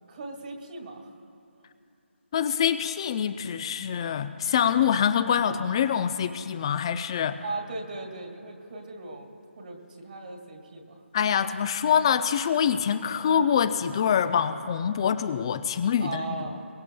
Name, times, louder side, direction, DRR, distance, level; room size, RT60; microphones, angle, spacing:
voice 1, 0.1-1.2 7.4-11.0 16.0-16.7, right 3 dB, 50° right, 1 dB, 2.1 m, -38 dB
voice 2, 2.3-7.4 11.1-16.2, left 8 dB, 25° left, 11 dB, 0.4 m, -25 dB
23.0 x 20.0 x 2.3 m, 2.8 s
figure-of-eight pair, 155°, 7 cm